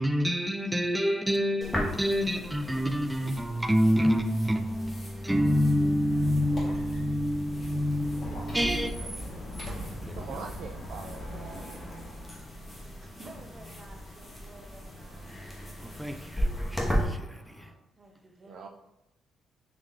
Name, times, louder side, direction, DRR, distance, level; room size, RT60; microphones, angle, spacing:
voice 1, 0.0-9.0 10.0-10.5 15.8-17.7, equal, 10° right, 0.4 m, -27 dB
sound 1, 1.2-17.7, left 2 dB, 75° left, 1.2 m, -52 dB
sound 2, 1.6-17.1, equal, 10° left, 0.9 m, -37 dB
Squeak, 6.0-12.5, equal, 40° left, 1.2 m, -39 dB
voice 2, 10.1-11.6 18.4-18.7, right 5 dB, 80° right, 0.3 m, -42 dB
voice 3, 13.0-15.3 18.0-18.7, right 2 dB, 35° right, 0.7 m, -52 dB
3.8 x 3.0 x 3.2 m
cardioid pair, 90°, 0 cm